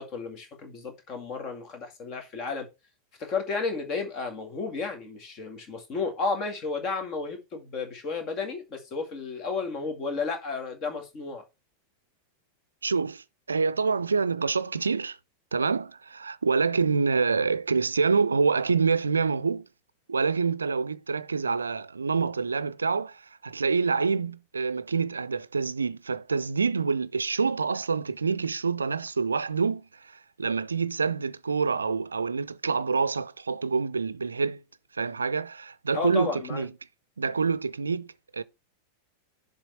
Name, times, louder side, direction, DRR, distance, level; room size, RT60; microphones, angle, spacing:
voice 1, 0.0-2.7 3.2-11.4 35.9-36.6, left 4 dB, 35° left, 2.1 m, -32 dB
voice 2, 12.8-15.2 15.5-19.7 20.1-34.6 34.9-36.7 37.2-38.4, right 5 dB, 75° right, 0.4 m, -27 dB
7.1 x 3.8 x 6.3 m
figure-of-eight pair, 90°, 0 cm